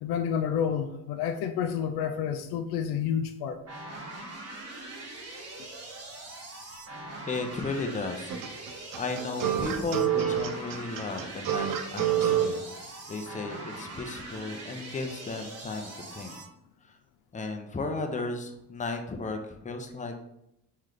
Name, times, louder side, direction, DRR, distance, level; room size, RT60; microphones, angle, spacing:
voice 1, 0.0-3.6, left 8 dB, 75° left, 7 dB, 0.5 m, -29 dB
sound 1, 3.7-16.4, right 2 dB, 40° right, 1.2 m, -42 dB
voice 2, 7.3-8.4 8.9-16.4 16.8-17.0 17.3-20.3, left 3 dB, 20° left, 4 dB, 0.7 m, -35 dB
sound 2, 8.3-12.5, right 10 dB, 60° right, 0.6 m, -27 dB
3.2 x 3.1 x 3.8 m, 0.81 s
cardioid pair, 80°, 38 cm